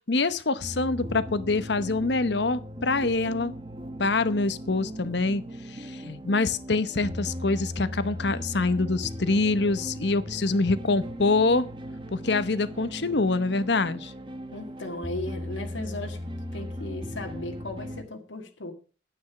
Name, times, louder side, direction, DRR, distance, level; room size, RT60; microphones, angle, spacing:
voice 1, 0.1-3.5 4.0-5.4 5.7-11.7 12.1-14.1, left 3 dB, 65° left, 14 dB, 0.9 m, -25 dB
sound 1, 0.6-18.0, equal, 25° right, 1.1 m, -38 dB
voice 2, 14.5-16.2 16.5-18.7, left 2 dB, 85° left, 4 dB, 1.8 m, -36 dB
9.7 x 8.9 x 5.8 m, 0.37 s
head